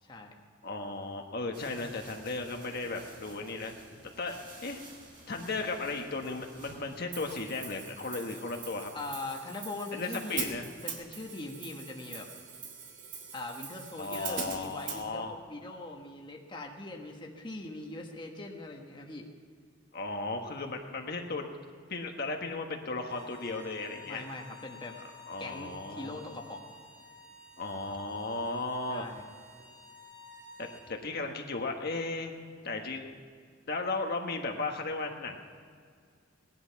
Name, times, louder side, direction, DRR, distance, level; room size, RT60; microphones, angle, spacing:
voice 1, 0.0-0.3 8.9-12.3 13.3-19.3 24.0-25.0 25.4-26.8 28.9-29.2, left 2 dB, 25° left, 1 dB, 1.3 m, -41 dB
voice 2, 0.6-3.7 4.2-4.3 4.6-4.8 5.3-8.9 9.9-10.7 14.0-15.4 19.9-21.5 21.9-24.2 25.3-26.4 27.6-29.0 30.6-32.3 32.6-33.1 33.7-35.4, left 3 dB, 55° left, 3 dB, 1.4 m, -35 dB
sound 1, 1.5-7.6, right 2 dB, 45° right, 3.9 m, -52 dB
Hi-hat, 7.1-15.0, right 6 dB, 70° right, 2.2 m, -42 dB
sound 2, 23.1-30.9, left 2 dB, 85° right, 4.5 m, -52 dB
18.0 x 11.0 x 5.8 m, 2.1 s
head